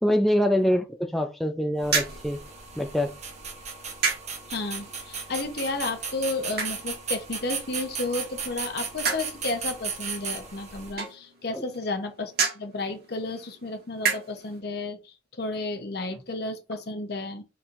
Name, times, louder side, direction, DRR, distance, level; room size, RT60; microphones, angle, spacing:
voice 1, 0.0-2.4 2.8-3.1 11.5-11.6, equal, ahead, 0.4 m, -24 dB
sound 1, 1.8-10.9, right 6 dB, 35° right, 1.0 m, -36 dB
sound 2, 1.8-14.6, right 5 dB, 55° right, 1.4 m, -34 dB
voice 2, 4.5-17.4, left 2 dB, 60° left, 0.9 m, -32 dB
4.3 x 4.3 x 2.5 m
head